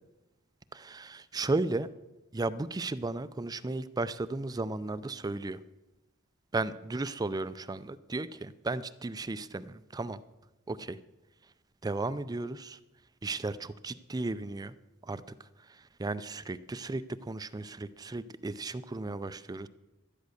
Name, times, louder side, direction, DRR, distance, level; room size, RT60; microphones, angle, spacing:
voice 1, 0.7-1.9 2.3-5.6 6.5-10.2 10.7-11.0 11.8-12.8 13.2-14.7 15.0-15.2 15.7-19.7, right 2 dB, 20° right, 14 dB, 0.4 m, -35 dB
12.5 x 10.5 x 6.5 m, 1.0 s
head